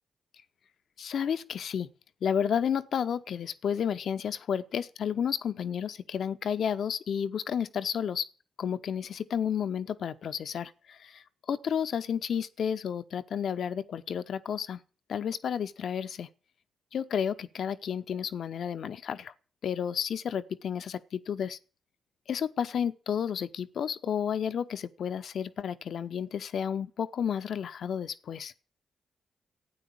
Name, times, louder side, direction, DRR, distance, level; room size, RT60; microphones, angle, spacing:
voice 1, 1.0-1.9 2.2-8.3 8.6-14.8 15.1-16.3 16.9-19.3 19.6-21.6 22.3-28.5, left 8 dB, 65° left, 0.8 m, -31 dB
13.0 x 9.0 x 8.7 m
hypercardioid pair, 45°, 0 cm